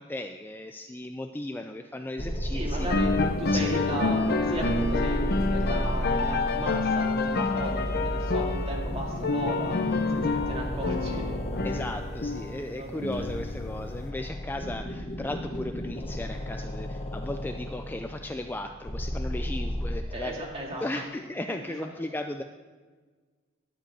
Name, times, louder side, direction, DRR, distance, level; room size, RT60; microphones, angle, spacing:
voice 1, 0.0-2.9 3.5-4.0 11.6-20.4 20.8-22.4, left 1 dB, 10° left, 6 dB, 0.3 m, -36 dB
sound 1, 2.2-20.0, equal, 30° left, 1.3 m, -33 dB
voice 2, 2.5-3.1 3.4-9.8 10.1-11.2 12.7-13.3 20.1-21.0 21.5-21.6, right 1 dB, 30° right, -2 dB, 2.3 m, -35 dB
sound 2, 2.8-14.1, left 3 dB, 50° left, 0.8 m, -28 dB
11.5 x 5.2 x 8.7 m, 1.5 s
head